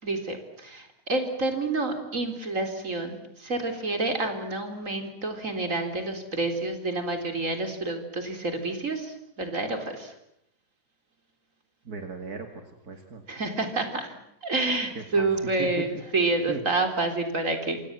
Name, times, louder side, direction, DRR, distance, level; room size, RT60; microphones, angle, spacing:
voice 1, 0.0-10.1 13.3-17.8, right 2 dB, 55° right, 6 dB, 4.3 m, -29 dB
voice 2, 11.8-12.5 12.8-13.2 14.9-15.3 15.6-16.0 16.5-16.9, right 4 dB, 80° right, 5 dB, 2.9 m, -36 dB
27.5 x 27.5 x 7.5 m, 0.75 s
omnidirectional pair, 1.6 m